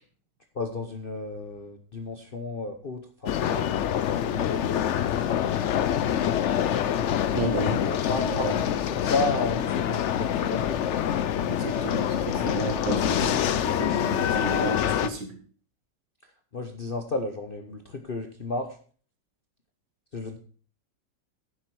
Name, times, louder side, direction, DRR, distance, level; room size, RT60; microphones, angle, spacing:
voice 1, 0.5-5.5 7.8-11.0 14.0-14.1 14.6-14.8 16.5-18.8 20.1-20.4, left 3 dB, 45° left, 0.8 m, -33 dB
sound 1, 3.3-15.1, left 9 dB, 75° left, 0.6 m, -26 dB
voice 2, 7.3-8.6 11.5-15.4, right 3 dB, 70° right, 2.5 m, -33 dB
10.5 x 7.7 x 4.6 m
omnidirectional pair, 1.9 m